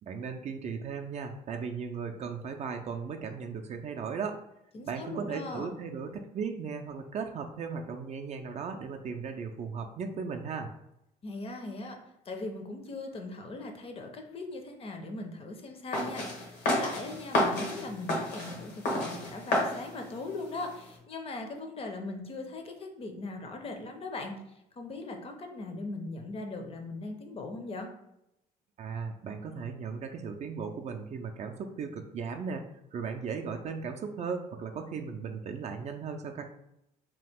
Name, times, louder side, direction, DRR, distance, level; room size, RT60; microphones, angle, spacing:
voice 1, 0.0-4.4 4.9-10.7 28.8-32.6 32.9-36.4, right 5 dB, 40° right, 4 dB, 0.4 m, -37 dB
voice 2, 4.7-5.7 11.2-12.0 12.3-24.4 24.8-27.9, left 2 dB, 35° left, 4 dB, 0.6 m, -39 dB
sound 1, 15.9-21.0, left 1 dB, 80° left, 1.1 m, -31 dB
2.8 x 2.3 x 3.4 m, 0.83 s
cardioid pair, 110°, 17 cm